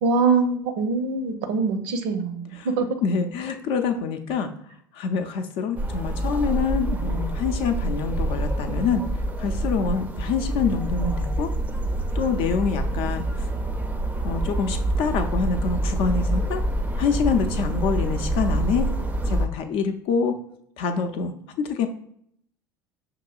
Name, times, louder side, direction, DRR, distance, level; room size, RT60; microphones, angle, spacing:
voice 1, 0.0-2.9, right 4 dB, 60° right, 7 dB, 0.6 m, -23 dB
voice 2, 3.0-4.5 4.9-9.0 9.4-11.5 12.1-13.2 14.2-16.6 17.0-18.9 19.3-20.3 20.8-21.3 21.6-21.9, left 5 dB, 50° left, 7 dB, 0.5 m, -26 dB
sound 1, 5.8-19.5, right 1 dB, 15° right, 0.5 m, -26 dB
5.9 x 2.9 x 2.3 m, 0.67 s
figure-of-eight pair, 65°, 11 cm